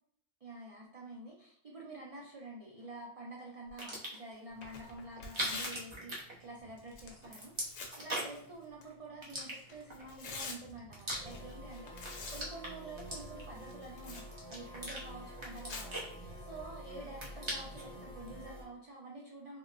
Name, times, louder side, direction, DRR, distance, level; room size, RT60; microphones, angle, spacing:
voice 1, 0.4-19.6, right 2 dB, 55° right, -3 dB, 0.4 m, -48 dB
sound 1, 3.7-4.3 5.2-6.8 7.1-8.5 9.2-10.0 10.6-11.7 12.0-13.6 14.1-15.0 15.4-16.7 17.0-17.9, right 1 dB, 30° right, 0.7 m, -41 dB
Tearing, 4.5-18.3, left 3 dB, 70° left, 0.9 m, -50 dB
sound 2, 11.1-18.6, equal, 35° left, 0.6 m, -49 dB
3.7 x 2.1 x 2.4 m, 0.70 s
omnidirectional pair, 1.2 m